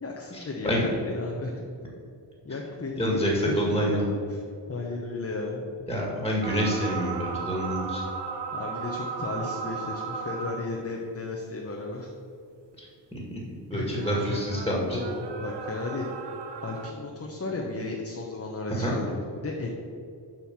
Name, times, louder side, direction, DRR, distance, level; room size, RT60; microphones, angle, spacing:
voice 1, 0.0-1.6 2.4-3.7 4.3-4.4 4.7-5.6 8.5-12.1 13.7-14.4 14.8-16.1 16.6-19.7, left 3 dB, 30° left, -1 dB, 1.0 m, -34 dB
voice 2, 3.0-4.1 5.9-8.0 12.8-12.9 13.1-13.4 13.7-15.0 18.7-19.0, equal, 5° left, -3 dB, 2.0 m, -27 dB
sound 1, 6.4-10.9 13.8-16.9, right 5 dB, 65° right, 0.8 m, -36 dB
7.3 x 5.6 x 6.1 m, 2.4 s
wide cardioid pair, 90°, 46 cm